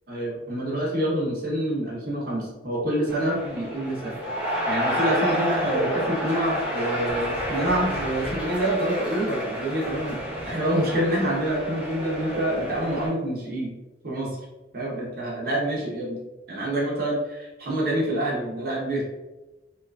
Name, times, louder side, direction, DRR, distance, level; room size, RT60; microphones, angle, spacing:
voice 1, 0.1-4.2 4.7-10.2 10.4-13.8 14.0-14.4 14.7-16.2 16.5-19.0, right 1 dB, 50° right, -4 dB, 0.7 m, -27 dB
sound 1, 3.1-13.1, equal, 10° right, 0.6 m, -29 dB
2.7 x 2.4 x 2.3 m, 1.0 s
head